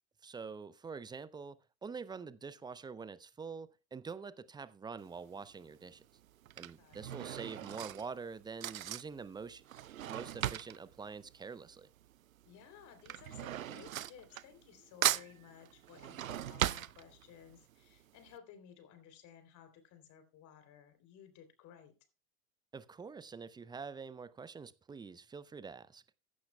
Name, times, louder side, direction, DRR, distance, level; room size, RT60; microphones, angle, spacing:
voice 1, 0.2-6.0 6.6-9.6 10.1-11.9 22.7-26.0, right 5 dB, 10° right, 0.5 m, -46 dB
Drawer open or close / Cutlery silverware, 5.0-5.4 6.2-12.1 12.4-14.8 15.0-17.5 18.0-18.1 18.3-18.4, right 12 dB, 85° right, 0.5 m, -38 dB
voice 2, 6.8-7.2 12.5-21.9, left 9 dB, 45° left, 3.3 m, -57 dB
15.5 x 11.5 x 2.2 m
figure-of-eight pair, 80°, 40 cm